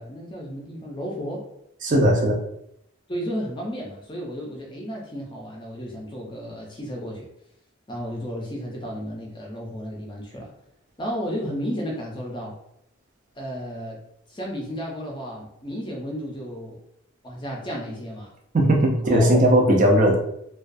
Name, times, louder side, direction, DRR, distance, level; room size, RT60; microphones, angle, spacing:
voice 1, 0.0-1.4 3.1-7.3 7.9-10.5 11.0-12.5 13.4-14.0 14.3-16.8 17.2-18.3 19.0-19.5, equal, 25° left, -2 dB, 0.5 m, -33 dB
voice 2, 1.8-2.4 18.5-20.2, right 1 dB, 40° right, 1 dB, 0.4 m, -18 dB
2.3 x 2.3 x 2.5 m, 0.75 s
head